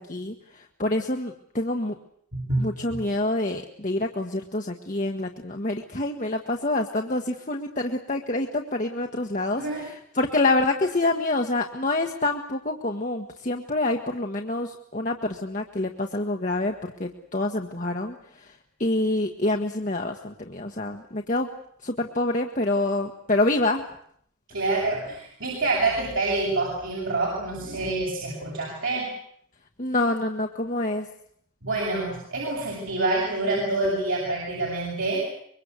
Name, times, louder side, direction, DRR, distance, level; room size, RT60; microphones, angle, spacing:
voice 1, 0.0-1.9 2.6-18.5 18.8-21.5 21.8-23.9 29.8-31.1, left 2 dB, 35° left, 3 dB, 1.4 m, -27 dB
voice 2, 2.3-3.0 9.6-9.8 24.5-29.1 31.6-35.2, right 2 dB, 65° right, -4 dB, 7.9 m, -27 dB
25.0 x 23.0 x 8.2 m, 0.66 s
head